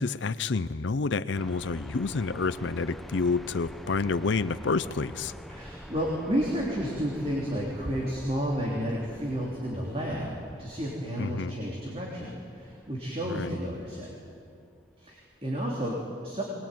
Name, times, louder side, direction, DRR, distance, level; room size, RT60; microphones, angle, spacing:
voice 1, 0.0-5.3 11.2-11.5 13.2-13.5, left 4 dB, 75° left, 13 dB, 0.6 m, -29 dB
sound 1, 1.3-15.3, equal, ahead, 0.9 m, -46 dB
voice 2, 5.5-14.1 15.0-16.4, equal, 30° right, -3 dB, 3.4 m, -31 dB
23.0 x 21.0 x 9.3 m, 2.5 s
head